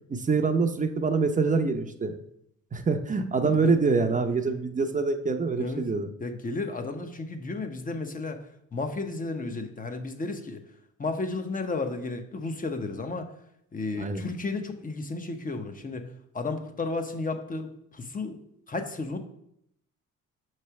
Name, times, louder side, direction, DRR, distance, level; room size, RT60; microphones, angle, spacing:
voice 1, 0.1-2.2 2.7-6.1 13.9-14.2, right 4 dB, 25° right, 6 dB, 0.6 m, -25 dB
voice 2, 6.2-8.4 8.7-10.6 11.0-13.3 13.7-16.1 16.3-18.4 18.7-19.2, left 3 dB, 30° left, 7 dB, 0.8 m, -33 dB
5.9 x 3.2 x 5.7 m, 0.74 s
cardioid pair, 90°, 30 cm